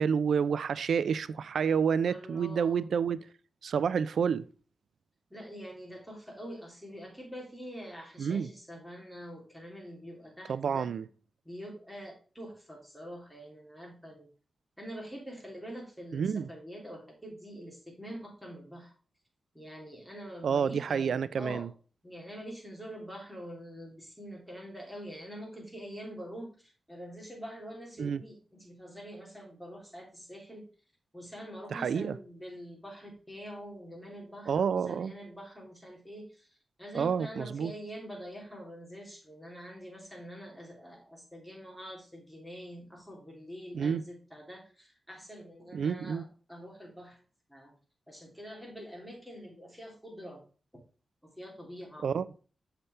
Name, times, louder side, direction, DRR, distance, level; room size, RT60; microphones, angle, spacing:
voice 1, 0.0-3.2 3.6-4.4 8.2-8.5 10.5-11.0 16.1-16.5 20.4-21.7 28.0-28.2 31.7-32.2 34.5-35.1 36.9-37.7 43.7-44.0 45.7-46.2 52.0-52.3, right 7 dB, 85° right, 0.3 m, -29 dB
voice 2, 2.0-2.9 5.3-10.9 11.4-14.3 14.8-18.9 19.5-21.7 22.0-30.7 31.1-36.5 36.8-47.2 47.5-47.7 48.1-50.4 51.2-52.1, equal, ahead, 2.8 m, -45 dB
6.8 x 5.7 x 3.2 m
wide cardioid pair, 90°, 0 cm